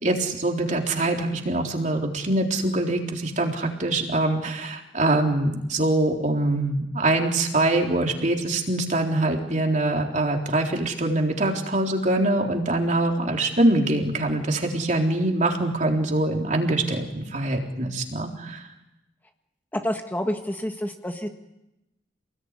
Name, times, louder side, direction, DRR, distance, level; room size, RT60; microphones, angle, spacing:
voice 1, 0.0-18.7, right 2 dB, 45° right, 1 dB, 3.8 m, -24 dB
voice 2, 19.7-21.3, equal, 10° left, 4 dB, 1.6 m, -28 dB
28.5 x 20.5 x 9.9 m, 0.94 s
head